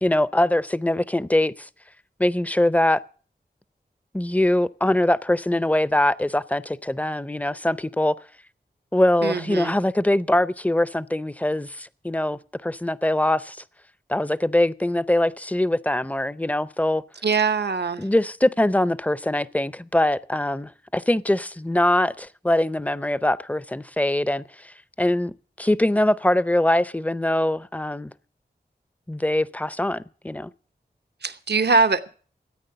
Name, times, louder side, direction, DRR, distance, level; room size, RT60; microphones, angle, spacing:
voice 1, 0.0-1.7 2.2-3.0 4.1-8.1 8.9-13.6 14.1-17.0 18.0-24.7 25.0-25.3 25.6-28.1 29.1-30.5, left 1 dB, 10° left, 0.5 m, -22 dB
voice 2, 9.2-9.7 17.2-18.1 31.2-32.1, right 4 dB, 75° right, 0.9 m, -22 dB
14.0 x 8.8 x 6.7 m
wide cardioid pair, 45°, 17 cm